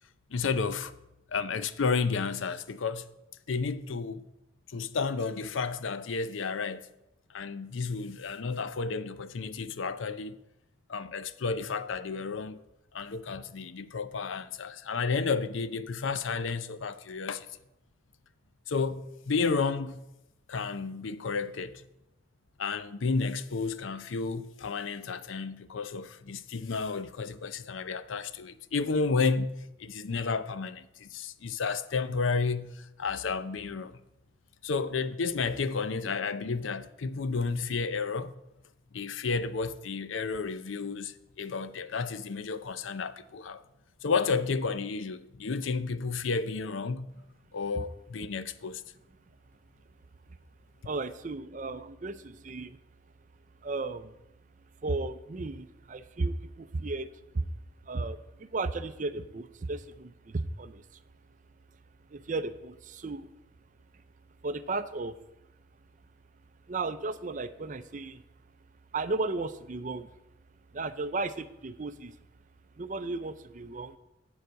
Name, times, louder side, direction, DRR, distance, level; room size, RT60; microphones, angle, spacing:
voice 1, 0.3-0.9 1.3-3.1 3.5-4.2 4.7-6.8 7.3-10.4 10.9-12.6 12.9-17.5 18.7-20.0 20.5-21.8 22.6-34.0 34.6-38.3 38.9-43.6 44.0-47.1 47.5-48.8, left 4 dB, 80° left, 0.5 m, -32 dB
voice 2, 50.8-52.8 53.6-54.1 54.8-57.1 57.3-57.5 57.9-60.8 62.1-63.3 64.4-65.1 66.7-68.2 68.9-70.1 70.7-72.1 72.8-74.0, right 3 dB, 40° right, 0.5 m, -34 dB
9.5 x 4.9 x 7.8 m
head